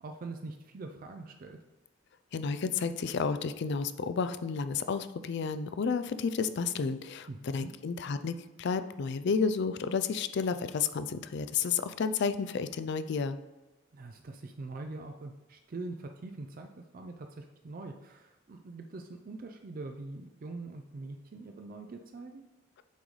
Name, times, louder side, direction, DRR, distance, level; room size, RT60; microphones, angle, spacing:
voice 1, 0.0-1.6 7.3-7.7 13.9-22.4, right 3 dB, 45° right, 5 dB, 0.4 m, -43 dB
voice 2, 2.3-13.4, left 5 dB, 55° left, 12 dB, 0.4 m, -31 dB
8.2 x 3.9 x 3.2 m, 1.1 s
head